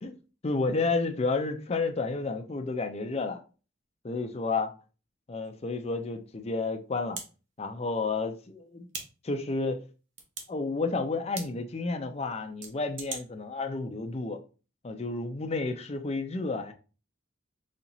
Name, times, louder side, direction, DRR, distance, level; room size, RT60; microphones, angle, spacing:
voice 1, 0.0-3.4 4.0-4.7 5.3-7.2 7.6-8.9 9.2-9.8 10.5-14.4 14.8-16.7, left 3 dB, 30° left, 0.5 m, -31 dB
sound 1, 5.4-5.5 7.1-7.3 8.9-9.1 10.2-10.5 11.3-11.5 12.6-13.2, right 5 dB, 70° right, 0.9 m, -37 dB
4.2 x 2.9 x 2.6 m
head